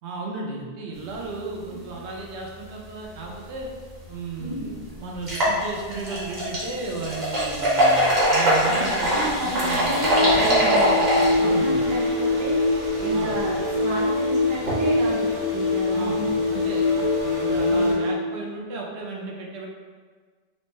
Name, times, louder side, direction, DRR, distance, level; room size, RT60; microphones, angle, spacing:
voice 1, 0.0-3.7 4.1-10.6 11.4-11.9 13.1-13.3 15.9-19.7, right 3 dB, 90° right, -1 dB, 0.9 m, -34 dB
sound 1, 3.9-4.0 4.4-4.5 5.1-17.9, equal, 45° right, 1.1 m, -25 dB
voice 2, 4.4-4.8 8.6-16.3 17.7-18.0, equal, 25° right, -4 dB, 0.4 m, -32 dB
sound 2, 9.8-18.2, left 2 dB, 65° right, 1.6 m, -23 dB
4.3 x 2.1 x 3.1 m, 1.5 s
omnidirectional pair, 1.1 m